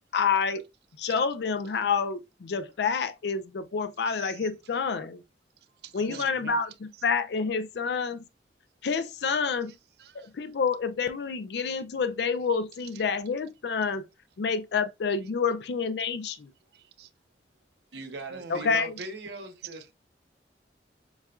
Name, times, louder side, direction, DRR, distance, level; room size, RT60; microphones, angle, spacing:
voice 1, 0.1-0.6 1.0-5.2 5.9-8.2 8.8-9.7 10.1-14.0 14.4-16.5 18.5-18.9, left 5 dB, 70° left, 0.4 m, -28 dB
voice 2, 4.2-4.5 5.8-6.6 10.0-10.3 12.9-13.0 16.7-17.1 18.3-19.1 19.7-19.9, right 7 dB, 65° right, 0.4 m, -46 dB
voice 3, 17.9-19.9, right 2 dB, 80° right, 0.9 m, -39 dB
7.1 x 2.4 x 2.3 m
head